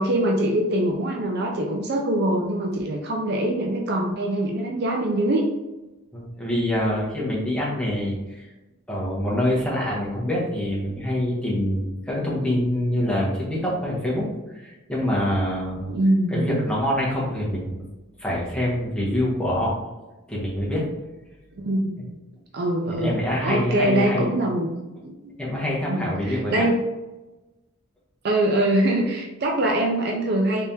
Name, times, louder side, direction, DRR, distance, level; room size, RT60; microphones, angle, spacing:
voice 1, 0.0-5.5 15.9-16.7 21.5-21.9 22.5-23.1 23.4-25.3 25.9-26.8 28.2-30.7, right 1 dB, 50° right, 1 dB, 0.5 m, -23 dB
voice 2, 6.1-8.5 8.9-15.9 16.3-17.8 18.2-19.7 20.3-20.9 22.0-22.1 22.9-24.3 25.4-26.7, left 1 dB, 5° left, -6 dB, 1.0 m, -25 dB
3.5 x 3.3 x 2.8 m, 1.1 s
head